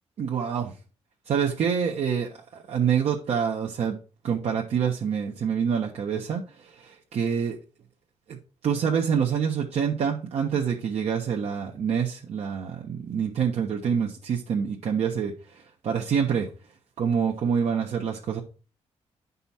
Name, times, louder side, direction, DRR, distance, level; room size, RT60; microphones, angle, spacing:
voice 1, 0.2-0.7 1.3-4.0 4.2-6.4 6.8-7.6 8.3-8.4 8.6-15.3 15.8-16.5 17.0-18.4, right 7 dB, 65° right, -1 dB, 1.2 m, -26 dB
9.5 x 5.5 x 4.3 m, 0.35 s
cardioid pair, 120°, 12 cm